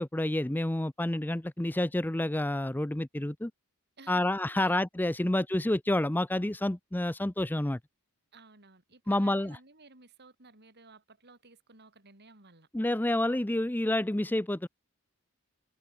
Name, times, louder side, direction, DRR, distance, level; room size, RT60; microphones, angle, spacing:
voice 1, 0.0-3.5 4.1-7.8 9.1-9.6 12.7-14.7, left 1 dB, 10° left, 0.5 m, -29 dB
voice 2, 8.3-12.7, right 3 dB, 50° right, 4.8 m, -55 dB
head